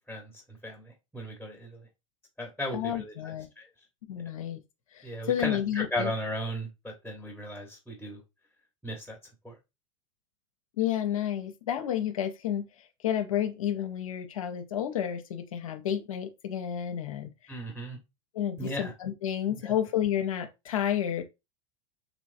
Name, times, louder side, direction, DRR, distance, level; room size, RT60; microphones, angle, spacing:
voice 1, 0.1-1.8 2.4-3.7 5.0-8.2 8.8-9.2 9.4-9.6 17.5-18.0 18.6-18.9 19.5-19.7, equal, 5° left, 0.9 m, -36 dB
voice 2, 2.7-3.5 4.1-4.6 4.9-6.1 10.8-17.3 18.3-21.2, left 10 dB, 80° left, 0.5 m, -31 dB
3.1 x 3.0 x 2.5 m
hypercardioid pair, 90°, 17 cm